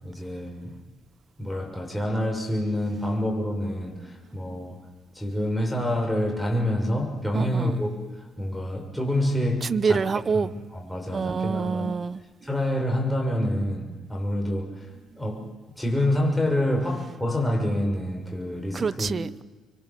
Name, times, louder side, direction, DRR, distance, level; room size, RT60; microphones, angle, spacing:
voice 1, 0.0-0.7 1.4-4.8 5.1-7.9 8.4-10.0 10.3-11.9 12.4-14.9 15.2-15.4 15.8-19.1, left 1 dB, 5° left, 1 dB, 6.6 m, -27 dB
voice 2, 7.3-7.7 9.7-10.5 11.1-12.2 18.7-19.4, right 5 dB, 40° right, 17 dB, 0.8 m, -26 dB
26.5 x 23.5 x 7.6 m, 1.3 s
cardioid pair, 90°, 0 cm